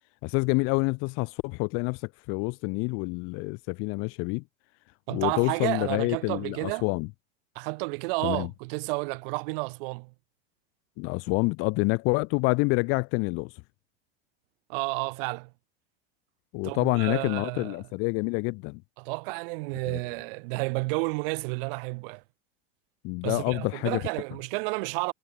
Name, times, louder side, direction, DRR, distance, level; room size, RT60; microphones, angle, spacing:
voice 1, 0.2-4.4 5.1-7.1 8.2-8.5 11.0-13.5 16.5-18.8 19.8-20.0 23.0-24.0, left 29 dB, 45° left, 0.4 m, -27 dB
voice 2, 5.1-6.8 7.6-10.1 14.7-15.5 16.6-17.8 19.0-22.2 23.2-25.1, right 29 dB, 60° right, 0.5 m, -31 dB
supercardioid pair, 125°, 32 cm